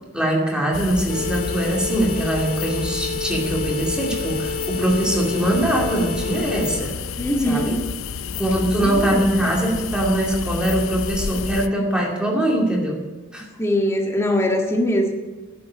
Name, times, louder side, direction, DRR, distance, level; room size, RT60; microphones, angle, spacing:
voice 1, 0.1-6.9 7.4-7.7 8.4-13.0 13.3-13.4, right 1 dB, 5° right, -2 dB, 2.4 m, -22 dB
sound 1, 0.7-11.7, left 5 dB, 75° left, 0.6 m, -30 dB
sound 2, 1.1-7.0, left 4 dB, 50° left, 1.4 m, -30 dB
voice 2, 7.2-7.8 8.8-9.3 13.6-15.1, left 1 dB, 15° left, 1 dB, 1.7 m, -21 dB
11.5 x 8.5 x 8.6 m, 1.2 s
head